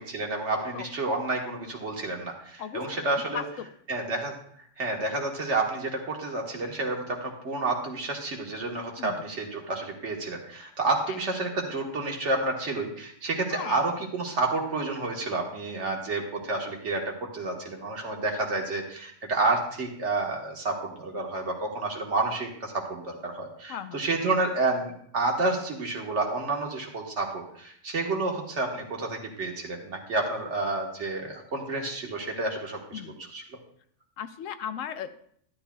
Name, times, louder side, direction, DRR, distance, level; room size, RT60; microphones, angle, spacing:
voice 1, 0.1-3.4 3.9-4.3 4.8-33.0 33.3-33.4, right 2 dB, 65° right, 1 dB, 1.7 m, -30 dB
voice 2, 2.6-3.1 3.3-3.7 9.0-9.2 11.1-11.2 13.5-13.8 23.7-24.0 32.9-33.2 34.2-35.2, left 8 dB, 90° left, 11 dB, 1.0 m, -37 dB
11.5 x 11.5 x 2.3 m, 0.66 s
omnidirectional pair, 1.3 m